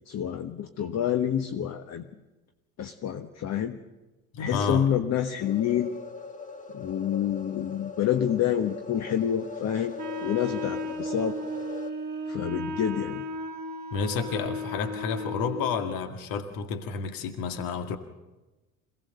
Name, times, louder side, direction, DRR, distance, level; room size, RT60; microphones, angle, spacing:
voice 1, 0.1-2.1 2.8-3.8 4.4-5.9 6.7-10.0 10.2-11.4 12.3-13.2, left 9 dB, 40° left, 8 dB, 1.4 m, -28 dB
voice 2, 4.3-4.9 13.9-18.0, left 5 dB, 55° left, 7 dB, 2.1 m, -30 dB
sound 1, 5.4-11.9, left 4 dB, 20° left, 2.1 m, -41 dB
Wind instrument woodwind instrument, 10.0-15.8, left 1 dB, 20° right, 2.7 m, -35 dB
26.5 x 18.0 x 6.7 m, 1.1 s
figure-of-eight pair, 65°, 42 cm